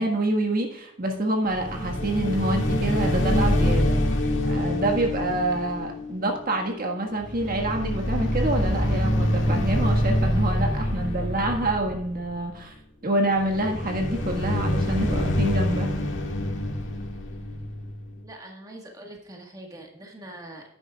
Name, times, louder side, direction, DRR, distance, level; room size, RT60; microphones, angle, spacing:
voice 1, 0.0-4.0 4.5-12.7 13.0-16.0, right 1 dB, 50° right, 2 dB, 1.6 m, -27 dB
sound 1, 1.5-6.9 7.1-12.4 13.3-18.2, left 1 dB, 70° left, 1.9 m, -26 dB
voice 2, 18.2-20.6, right 1 dB, 20° right, 1 dB, 1.6 m, -43 dB
11.5 x 9.6 x 2.4 m, 0.72 s
head